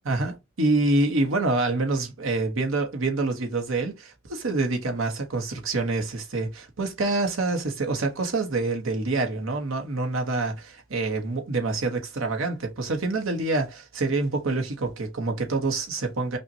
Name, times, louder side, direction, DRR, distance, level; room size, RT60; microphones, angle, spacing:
voice 1, 0.1-16.4, right 2 dB, 70° right, 0.9 m, -26 dB
5.3 x 2.2 x 2.7 m
head